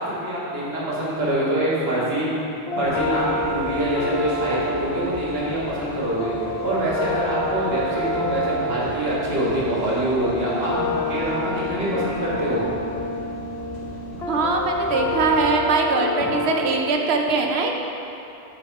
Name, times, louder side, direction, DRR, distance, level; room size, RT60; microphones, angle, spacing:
voice 1, 0.0-2.3 2.8-6.3 6.6-12.6, right 1 dB, 70° right, -6 dB, 1.9 m, -25 dB
sound 1, 2.7-16.9, left 2 dB, 90° left, 1.0 m, -28 dB
sound 2, 2.8-15.5, left 1 dB, 40° left, 1.3 m, -39 dB
voice 2, 14.3-17.7, right 3 dB, 90° right, 2 dB, 0.9 m, -22 dB
7.0 x 5.4 x 4.7 m, 2.8 s
omnidirectional pair, 1.1 m